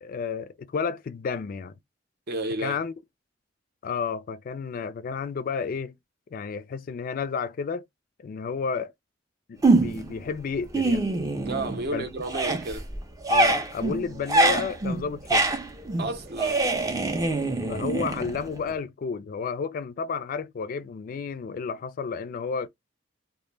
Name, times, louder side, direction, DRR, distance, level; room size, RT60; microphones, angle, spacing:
voice 1, 0.0-1.7 2.6-2.9 3.8-6.0 6.3-7.8 8.2-8.9 9.5-11.1 11.9-12.1 13.3-15.5 17.7-22.7, left 5 dB, 45° left, 0.3 m, -31 dB
voice 2, 2.3-2.8 11.5-12.9 16.0-16.7, right 2 dB, 55° right, 0.7 m, -32 dB
sound 1, 9.6-10.2 10.6-11.9 12.2-18.7, right 2 dB, 20° right, 0.4 m, -25 dB
2.1 x 2.1 x 3.1 m
head